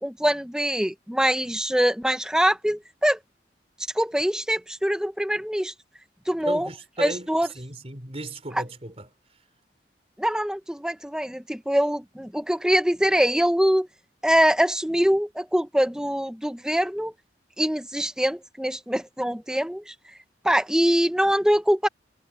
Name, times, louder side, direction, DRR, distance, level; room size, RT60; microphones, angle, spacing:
voice 1, 0.0-3.2 3.9-5.7 6.3-6.7 7.0-7.5 10.2-13.9 14.2-17.1 17.6-19.9 20.4-21.9, equal, 5° right, 1.0 m, -23 dB
voice 2, 6.4-7.3 7.6-9.1, right 1 dB, 35° right, 4.1 m, -35 dB
head